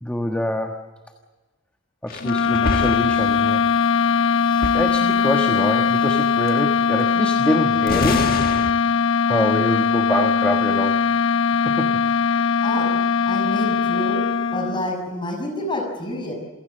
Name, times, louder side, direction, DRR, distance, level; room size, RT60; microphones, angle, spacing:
voice 1, 0.0-0.8 2.0-3.6 4.1-4.3 4.7-8.3 9.3-10.9 11.6-12.0 12.3-12.4, left 1 dB, 5° left, 3 dB, 1.4 m, -25 dB
sound 1, 2.1-3.8 4.1-4.2 4.4-5.4 6.5-6.6 7.9-8.7, left 2 dB, 40° left, 1.5 m, -27 dB
sound 2, 2.2-14.9, left 6 dB, 65° left, 0.8 m, -20 dB
voice 2, 12.6-12.9 13.3-14.2 14.5-16.3, left 1 dB, 20° left, 2 dB, 6.2 m, -28 dB
27.5 x 17.0 x 7.7 m, 1.3 s
head